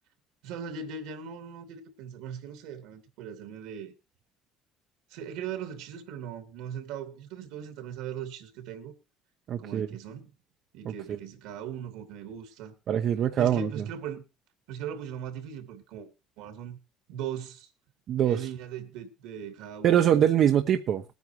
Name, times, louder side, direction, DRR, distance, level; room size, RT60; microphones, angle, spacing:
voice 1, 0.4-3.9 5.1-8.9 9.6-10.3 10.7-12.7 13.4-14.2 14.7-16.1 16.4-16.8 17.1-17.7 18.2-20.1, right 8 dB, 80° right, 2.6 m, -39 dB
voice 2, 9.5-9.9 10.8-10.9 12.9-13.7 18.1-18.5 19.8-21.0, right 10 dB, 55° right, 0.9 m, -23 dB
20.5 x 9.4 x 3.1 m
supercardioid pair, 100°, 0 cm